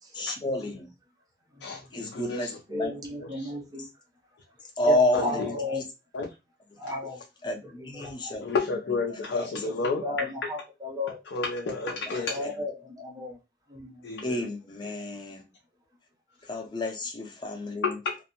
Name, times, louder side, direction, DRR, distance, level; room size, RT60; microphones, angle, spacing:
voice 1, 0.1-0.9 1.9-2.9 4.8-5.8 7.4-8.5 9.4-9.8 10.1-10.2 11.9-12.5 14.2-15.4 16.5-18.0, left 1 dB, 25° left, 0.5 m, -30 dB
voice 2, 1.6-2.6 3.2-3.5 5.1-5.6 6.1-6.3 8.0-8.1 8.4-10.5 11.3-12.5 14.0-14.4 17.8-18.2, left 4 dB, 85° left, 0.4 m, -31 dB
voice 3, 2.7-3.8 4.9-5.8 6.8-7.2 8.0-8.3 9.5-9.7 10.0-11.2 12.3-13.4 13.7-13.9, left 2 dB, 20° right, 0.6 m, -34 dB
2.5 x 2.0 x 2.7 m
head